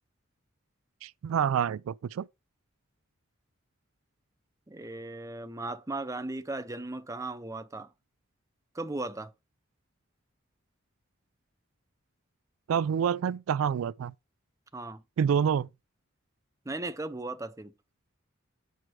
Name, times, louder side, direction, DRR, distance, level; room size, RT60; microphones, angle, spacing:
voice 1, 1.0-2.3 12.7-14.1 15.2-15.7, right 8 dB, 85° right, 0.3 m, -27 dB
voice 2, 4.7-7.9 8.7-9.3 14.7-15.0 16.7-17.7, right 2 dB, 15° right, 0.6 m, -37 dB
8.0 x 4.5 x 4.7 m
head